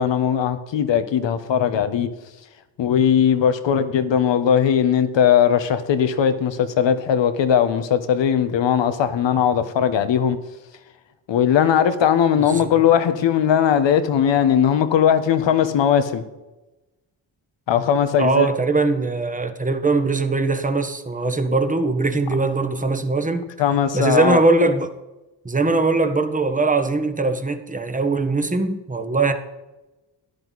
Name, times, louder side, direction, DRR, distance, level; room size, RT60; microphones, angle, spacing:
voice 1, 0.0-2.1 2.8-10.4 11.3-16.2 17.7-18.5 23.6-24.4, left 8 dB, 70° left, 1.3 m, -19 dB
voice 2, 12.4-12.7 18.2-23.5 23.9-24.9 25.4-29.3, right 3 dB, 15° right, 1.4 m, -21 dB
13.0 x 10.5 x 4.1 m
cardioid pair, 75°, 45 cm